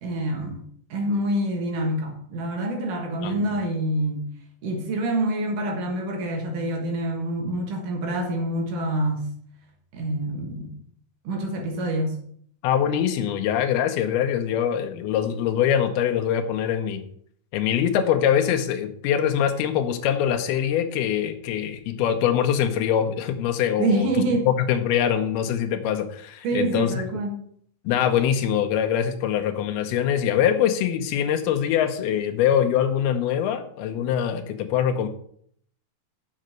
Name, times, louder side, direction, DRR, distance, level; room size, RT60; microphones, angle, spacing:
voice 1, 0.0-0.6 0.9-4.3 4.6-9.3 9.9-10.8 11.2-12.2 23.8-24.5 26.4-27.4, right 1 dB, 60° right, 2 dB, 2.9 m, -26 dB
voice 2, 3.2-3.6 12.6-17.0 17.5-24.1 24.5-26.9 27.9-35.1, left 9 dB, 80° left, 6 dB, 2.8 m, -23 dB
7.2 x 6.7 x 7.6 m, 0.64 s
omnidirectional pair, 4.4 m